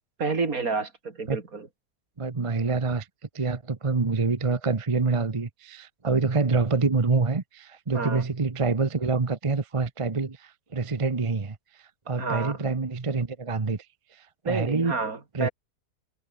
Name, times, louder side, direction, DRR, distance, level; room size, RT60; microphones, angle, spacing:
voice 1, 0.2-1.7 7.9-8.2 12.2-12.7 14.4-15.5, right 4 dB, 55° right, 3.1 m, -30 dB
voice 2, 2.2-3.1 3.3-13.9 14.1-15.0 15.3-15.5, right 4 dB, 25° right, 0.9 m, -26 dB
omnidirectional pair, 1.8 m